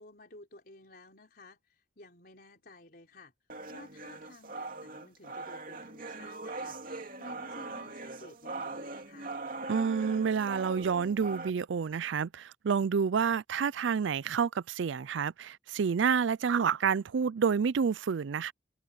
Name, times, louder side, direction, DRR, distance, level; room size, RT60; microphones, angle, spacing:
voice 1, 0.0-3.3 3.7-9.4, left 2 dB, 50° left, 4.1 m, -54 dB
sound 1, 3.5-11.5, right 3 dB, 45° right, 2.9 m, -41 dB
voice 2, 9.7-18.5, right 6 dB, 70° right, 0.4 m, -29 dB
head